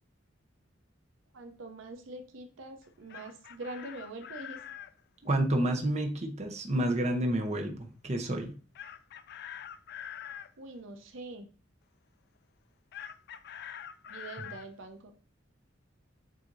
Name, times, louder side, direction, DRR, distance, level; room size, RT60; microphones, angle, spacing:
voice 1, 1.3-4.6 10.6-11.5 14.1-15.1, right 2 dB, 80° right, 6 dB, 0.6 m, -44 dB
Chicken rooster, 2.8-4.9 8.8-10.5 12.9-14.7, left 9 dB, 55° left, 0.3 m, -44 dB
voice 2, 5.2-8.5, right 1 dB, 35° right, 4 dB, 0.8 m, -29 dB
7.5 x 2.7 x 2.5 m, 0.37 s
head